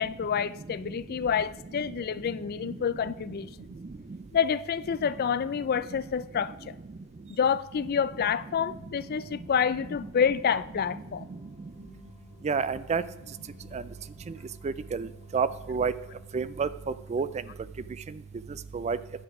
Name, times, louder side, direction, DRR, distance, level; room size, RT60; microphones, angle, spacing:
voice 1, 0.0-3.7 4.3-6.8 7.4-11.3, left 7 dB, 45° left, 0.4 m, -28 dB
sound 1, 8.9-17.2, left 4 dB, 75° left, 1.8 m, -56 dB
voice 2, 12.4-13.0 13.7-13.8 14.6-15.1 15.3-15.9 16.3-16.7 17.1-17.3 18.7-19.0, right 5 dB, 30° right, 0.4 m, -28 dB
10.0 x 7.9 x 4.8 m
head